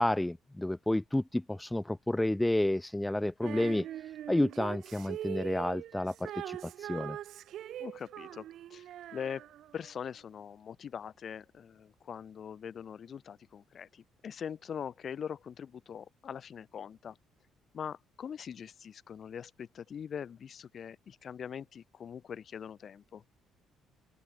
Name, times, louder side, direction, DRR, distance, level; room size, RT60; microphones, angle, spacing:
voice 1, 0.0-3.9 4.3-7.2, left 1 dB, 10° left, 0.3 m, -30 dB
Female singing, 3.4-9.9, right 12 dB, 65° right, 1.3 m, -42 dB
voice 2, 7.8-9.5 9.7-17.2 17.7-23.2, left 8 dB, 50° left, 1.2 m, -42 dB
open air
cardioid pair, 100°, 0 cm